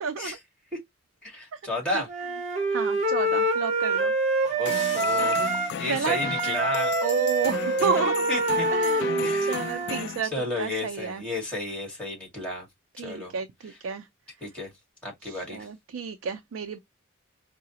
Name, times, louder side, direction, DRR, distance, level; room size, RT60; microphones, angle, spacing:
voice 1, 0.0-0.4 1.5-1.6 1.9-2.0 2.7-4.1 5.8-6.2 7.0-8.3 8.7-11.2 13.0-14.1 15.2-16.8, right 6 dB, 80° right, 0.4 m, -31 dB
voice 2, 1.2-2.1 4.5-7.0 8.3-8.7 9.2-9.7 10.3-12.7 13.0-13.3 14.4-14.7 15.0-15.7, left 2 dB, 5° left, 1.7 m, -33 dB
Wind instrument woodwind instrument, 2.1-5.8 6.0-10.0, right 2 dB, 35° right, 0.9 m, -26 dB
sound 1, 4.7-10.2, left 8 dB, 55° left, 0.3 m, -34 dB
4.6 x 2.0 x 2.8 m
head